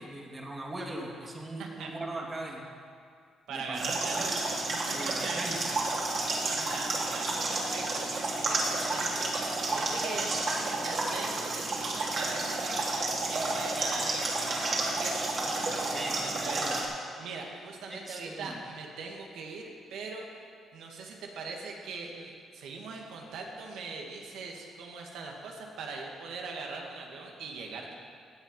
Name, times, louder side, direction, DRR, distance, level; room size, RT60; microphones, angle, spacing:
voice 1, 0.0-2.6 3.5-3.9 4.1-4.4 4.9-5.6 15.9-16.8 17.9-18.6, right 1 dB, 25° right, 0 dB, 2.4 m, -40 dB
voice 2, 1.6-1.9 3.5-4.4 4.9-5.5 6.3-20.4 20.7-28.0, right 4 dB, 85° right, 1 dB, 1.8 m, -41 dB
sound 1, 3.7-16.9, right 2 dB, 50° right, 2.9 m, -31 dB
16.0 x 8.0 x 5.4 m, 2.2 s
cardioid pair, 90°, 0 cm